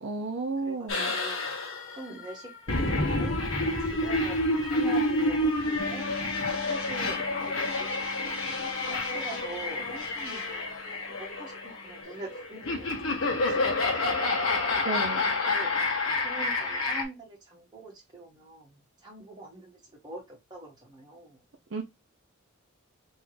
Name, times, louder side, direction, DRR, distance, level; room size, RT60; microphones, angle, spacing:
voice 1, 0.0-1.2 14.8-15.2 21.7-21.8, right 3 dB, 60° right, 0.6 m, -32 dB
voice 2, 0.6-1.5 2.0-2.5 2.8-3.3 3.6-6.1 6.7-7.3 7.5-8.6 8.9-10.8 11.1-14.2 15.3-15.7 16.2-21.4, right 2 dB, 20° right, 1.7 m, -44 dB
sound 1, 0.9-17.0, left 2 dB, 75° left, 1.3 m, -29 dB
Bass guitar, 5.8-12.0, right 2 dB, 5° left, 1.2 m, -48 dB
3.6 x 3.1 x 3.2 m
head